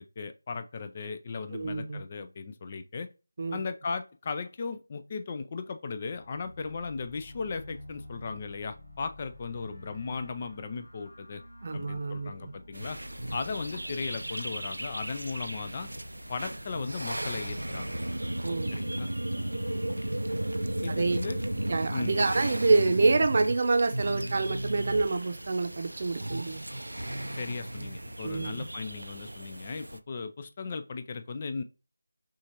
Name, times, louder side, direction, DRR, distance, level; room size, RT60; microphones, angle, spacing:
voice 1, 0.0-3.1 3.5-11.4 11.7-13.0 13.3-15.9 16.3-17.9 18.7-19.1 20.8-21.4 21.9-22.1 27.3-31.6, left 4 dB, 30° left, 0.3 m, -37 dB
voice 2, 1.5-2.0 3.4-3.6 11.6-12.3 18.4-18.8 20.9-21.2 21.7-26.6 28.2-28.6, right 3 dB, 45° right, 0.7 m, -27 dB
sound 1, 5.9-21.8, left 1 dB, 85° left, 1.4 m, -49 dB
sound 2, 12.7-30.0, right 1 dB, 85° right, 0.5 m, -35 dB
6.2 x 2.4 x 2.9 m
figure-of-eight pair, 165°, 0 cm